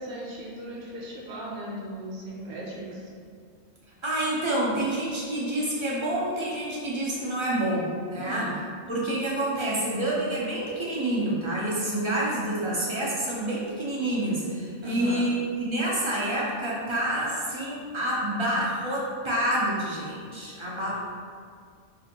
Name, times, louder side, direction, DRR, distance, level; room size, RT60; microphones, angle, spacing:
voice 1, 0.0-3.1 8.2-8.5 14.8-15.3, right 1 dB, 60° right, -4 dB, 0.9 m, -37 dB
voice 2, 4.0-8.5 8.9-21.0, right 1 dB, 45° right, -6 dB, 0.4 m, -28 dB
4.8 x 2.5 x 2.8 m, 2.1 s
omnidirectional pair, 1.4 m